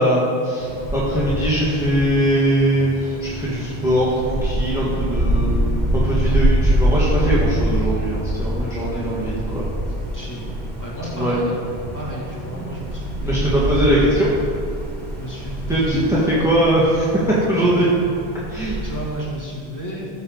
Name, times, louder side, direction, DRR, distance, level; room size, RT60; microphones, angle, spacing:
voice 1, 0.0-5.5 5.9-9.6 11.1-11.4 13.2-14.3 15.7-16.2 16.4-17.1 17.5-17.8 18.5-18.8, right 1 dB, 5° right, -7 dB, 1.6 m, -21 dB
Wind, 0.6-19.2, right 1 dB, 45° right, 1.8 m, -25 dB
voice 2, 8.8-9.1 9.9-10.5 10.8-11.6 11.9-13.5 15.2-16.4 17.5-17.7 18.8-20.1, equal, 15° left, -7 dB, 2.4 m, -32 dB
15.5 x 7.1 x 3.9 m, 2.4 s
omnidirectional pair, 1.1 m